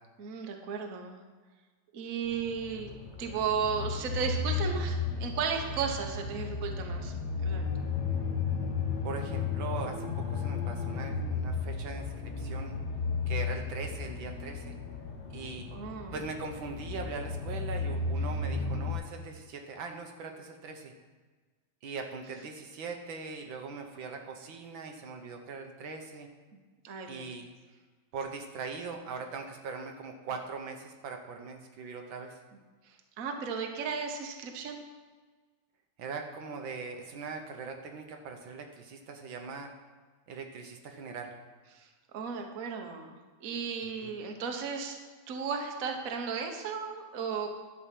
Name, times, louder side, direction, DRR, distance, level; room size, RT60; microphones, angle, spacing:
voice 1, 0.2-1.2 1.9-2.9 3.2-7.1 7.4-7.9 15.7-16.1 18.3-18.4 26.8-27.3 32.9-34.8 41.7-41.9 42.1-45.0 45.3-47.5, right 6 dB, 50° right, 3 dB, 1.3 m, -35 dB
sound 1, 2.2-18.9, left 4 dB, 45° left, 1.2 m, -34 dB
voice 2, 9.0-12.7 13.3-14.8 15.3-15.7 16.1-20.9 21.8-26.3 27.1-27.5 28.1-32.4 36.0-39.7 40.3-41.3 44.0-44.1, right 4 dB, 75° right, 3 dB, 1.7 m, -41 dB
11.0 x 5.0 x 7.5 m, 1.4 s
omnidirectional pair, 2.2 m